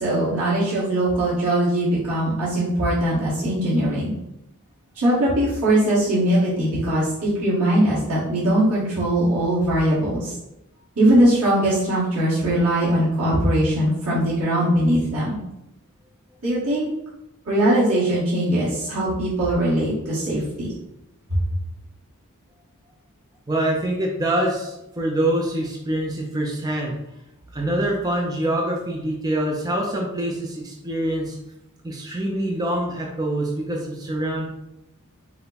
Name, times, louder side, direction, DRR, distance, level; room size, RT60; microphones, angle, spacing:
voice 1, 0.0-4.1 5.0-10.3 11.0-15.4 16.4-16.9 17.5-20.7, right 1 dB, 85° right, -9 dB, 1.6 m, -21 dB
voice 2, 23.5-27.0 27.5-31.4 31.8-34.5, right 1 dB, 15° right, -1 dB, 0.5 m, -25 dB
5.6 x 2.2 x 4.0 m, 0.89 s
head